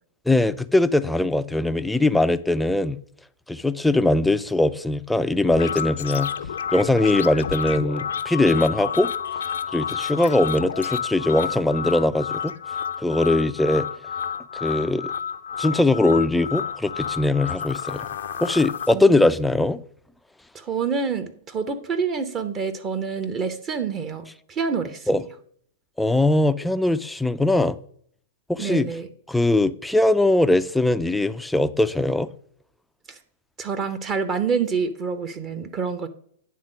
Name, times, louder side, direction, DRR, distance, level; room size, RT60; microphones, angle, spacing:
voice 1, 0.3-3.0 3.5-6.3 6.7-9.1 9.7-12.5 13.0-13.9 14.5-15.1 15.6-18.1 18.4-19.8 25.1-25.2 26.0-27.8 28.5-28.9 29.3-32.3, left 2 dB, 5° left, 0.4 m, -21 dB
sound 1, 5.5-18.9, left 7 dB, 65° left, 0.5 m, -30 dB
voice 2, 18.9-19.2 20.5-25.2 28.6-29.1 33.1-33.2 33.6-36.1, right 5 dB, 25° right, 0.8 m, -27 dB
9.4 x 3.7 x 6.1 m
figure-of-eight pair, 105°, 0 cm